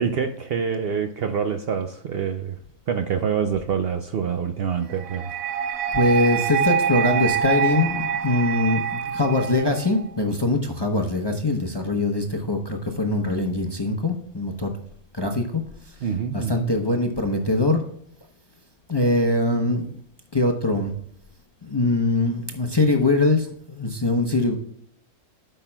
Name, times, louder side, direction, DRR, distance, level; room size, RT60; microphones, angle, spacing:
voice 1, 0.0-2.6 2.9-5.3 16.0-16.7, right 7 dB, 60° right, 0.6 m, -26 dB
sound 1, 5.0-10.0, right 8 dB, 90° right, 1.0 m, -25 dB
voice 2, 5.9-14.7 15.1-15.6 16.3-17.8 18.9-20.0 20.3-20.9 21.6-24.6, left 2 dB, 25° left, 0.6 m, -22 dB
12.5 x 5.6 x 2.2 m
omnidirectional pair, 1.4 m